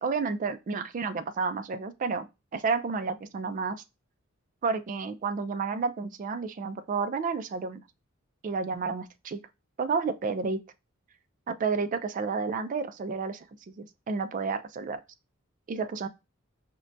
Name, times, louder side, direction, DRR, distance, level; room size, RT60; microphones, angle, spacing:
voice 1, 0.0-2.3 2.5-3.8 4.6-7.8 8.4-9.4 9.8-10.6 11.5-15.0 15.7-16.1, right 4 dB, 40° right, 0.3 m, -31 dB
4.4 x 2.1 x 2.5 m
head